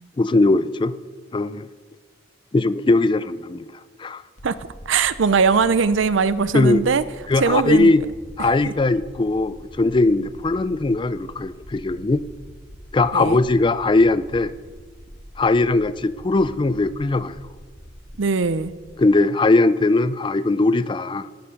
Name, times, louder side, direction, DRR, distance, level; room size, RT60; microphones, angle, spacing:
voice 1, 0.2-0.9 1.3-1.7 2.5-3.7 4.0-4.2 6.5-6.8 7.3-8.0 8.4-12.2 12.9-14.5 15.4-17.4 19.0-21.3, left 2 dB, 25° left, 15 dB, 0.4 m, -19 dB
sound 1, 4.4-18.9, equal, 40° left, 2.0 m, -44 dB
voice 2, 4.4-7.0 7.4-7.9 8.7-8.8 13.1-13.4 18.2-18.7, right 5 dB, 80° right, 15 dB, 0.5 m, -20 dB
18.5 x 7.0 x 6.5 m, 1.5 s
head